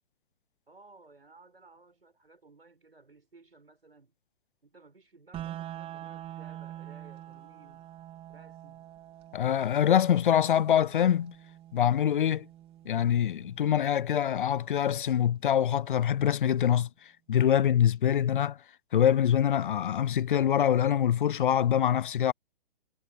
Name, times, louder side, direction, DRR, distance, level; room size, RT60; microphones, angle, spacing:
voice 1, 0.7-4.1 4.6-7.9 8.3-8.8, right 3 dB, 85° right, 6.5 m, -57 dB
sound 1, 5.3-15.3, right 12 dB, 20° right, 3.3 m, -46 dB
voice 2, 9.3-11.3 11.7-12.5 12.9-16.9 17.3-18.6 18.9-22.3, left 9 dB, 60° left, 0.6 m, -24 dB
figure-of-eight pair, 120°, 29 cm